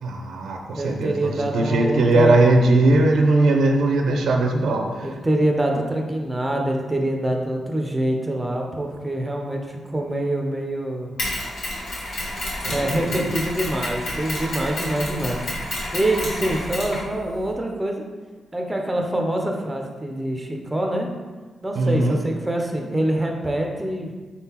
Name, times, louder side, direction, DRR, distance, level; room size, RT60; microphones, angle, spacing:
voice 1, 0.0-5.1 12.6-13.3 21.7-22.2, right 2 dB, 80° right, 2 dB, 0.5 m, -19 dB
voice 2, 0.7-2.4 5.0-11.2 12.7-15.4 15.9-18.0 18.5-21.1 21.6-24.1, right 1 dB, 10° right, 2 dB, 0.4 m, -25 dB
Mechanisms, 11.2-17.5, left 1 dB, 80° left, 1.3 m, -30 dB
4.1 x 3.6 x 2.9 m, 1.3 s
wide cardioid pair, 140°, 0 cm